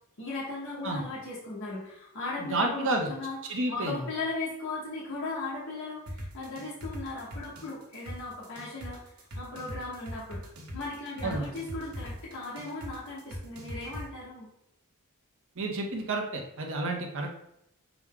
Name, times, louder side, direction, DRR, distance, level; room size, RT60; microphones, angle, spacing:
voice 1, 0.2-9.0 9.3-10.4 10.7-14.5, left 3 dB, 65° left, -6 dB, 1.2 m, -37 dB
voice 2, 2.4-3.1 3.5-4.0 11.2-11.4 15.6-17.3, right 2 dB, 60° right, 2 dB, 0.8 m, -30 dB
sound 1, 6.1-14.0, equal, 80° right, 1.1 m, -40 dB
6.0 x 2.2 x 3.6 m, 0.78 s
head